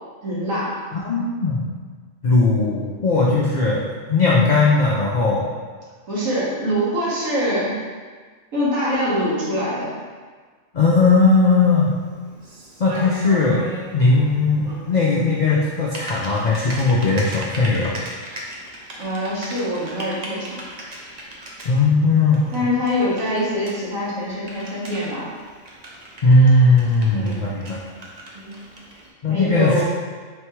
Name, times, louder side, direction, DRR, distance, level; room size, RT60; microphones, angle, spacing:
voice 1, 0.2-0.7 6.1-7.8 8.5-10.0 19.0-20.6 22.5-25.3 27.1-27.6 29.3-29.8, equal, 80° right, -7 dB, 1.6 m, -24 dB
voice 2, 0.9-1.7 2.2-5.5 10.7-11.9 12.8-13.7 13.9-18.0 21.6-22.5 26.2-27.8 29.2-29.8, left 3 dB, 70° left, -5 dB, 0.4 m, -18 dB
Typing, 11.0-29.1, right 1 dB, 50° right, 0.5 m, -38 dB
4.2 x 3.3 x 3.0 m, 1.5 s
omnidirectional pair, 1.4 m